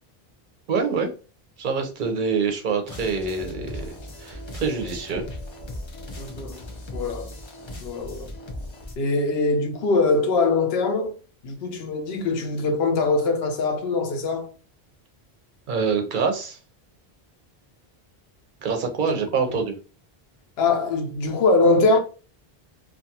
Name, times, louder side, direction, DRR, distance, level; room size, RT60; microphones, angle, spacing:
voice 1, 0.7-1.1 1.6-3.9 4.2-5.2 15.7-16.6 18.6-19.7, right 5 dB, 55° right, 0.7 m, -25 dB
sound 1, 2.8-9.0, left 1 dB, 40° left, 0.4 m, -37 dB
voice 2, 6.2-6.6 6.9-7.3 7.8-8.3 9.0-11.2 11.4-14.5 19.0-19.2 20.6-22.0, left 3 dB, 75° left, 0.8 m, -22 dB
2.5 x 2.3 x 2.7 m
omnidirectional pair, 1.0 m